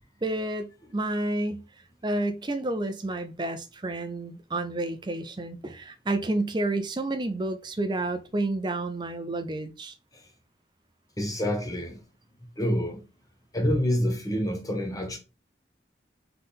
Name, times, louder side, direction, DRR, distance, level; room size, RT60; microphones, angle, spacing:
voice 1, 0.2-1.7 2.0-9.9, right 2 dB, 25° right, 0.5 m, -30 dB
voice 2, 11.2-12.0 12.6-13.0 13.5-15.2, equal, 20° left, 1.0 m, -27 dB
3.7 x 3.3 x 4.1 m
head